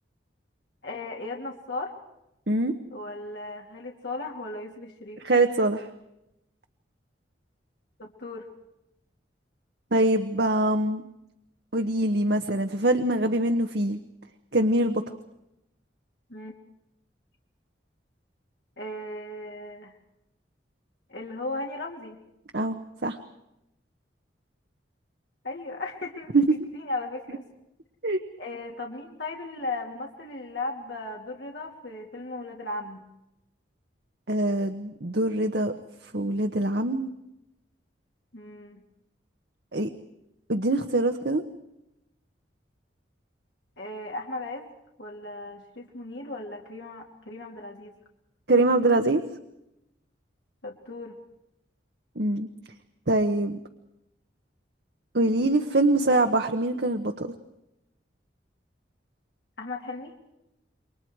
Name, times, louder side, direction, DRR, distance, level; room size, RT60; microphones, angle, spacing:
voice 1, 0.8-1.9 2.9-5.2 8.0-8.5 16.3-16.5 18.8-19.9 21.1-22.2 25.4-26.4 26.7-27.4 28.4-33.0 38.3-38.8 43.8-44.7 45.0-47.9 50.6-51.2 59.6-60.1, left 2 dB, 70° left, 0 dB, 3.0 m, -36 dB
voice 2, 5.2-5.9 9.9-11.0 11.7-14.0 14.5-15.0 22.5-22.7 23.0-23.2 26.3-26.5 28.0-28.2 34.3-35.7 36.1-37.1 39.7-39.9 40.5-41.4 48.5-49.2 52.2-52.5 53.1-53.6 55.1-57.3, right 2 dB, 60° right, 6 dB, 1.3 m, -23 dB
28.5 x 24.0 x 4.8 m, 0.87 s
head